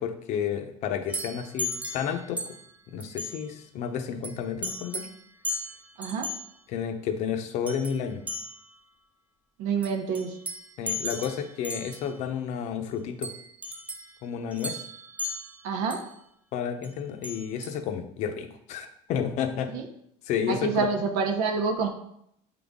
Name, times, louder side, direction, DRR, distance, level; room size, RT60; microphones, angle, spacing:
voice 1, 0.0-2.4 2.9-5.1 6.7-8.2 10.8-13.3 14.2-14.8 16.5-19.7 20.2-20.9, left 8 dB, 55° left, 6 dB, 0.7 m, -31 dB
sound 1, 1.1-2.7 3.0-3.4 4.2-4.4 4.6-5.2 5.4-6.5 7.7-8.0 8.3-8.7 9.8-12.1 13.2-14.1 14.5-16.1 16.8-16.9 17.2-17.7, left 1 dB, 10° right, 0.5 m, -36 dB
voice 2, 6.0-6.3 9.6-10.3 15.6-16.0 19.7-19.9 20.5-21.9, right 5 dB, 75° right, 4 dB, 0.9 m, -27 dB
7.6 x 3.9 x 3.6 m, 0.73 s
cardioid pair, 155°, 14 cm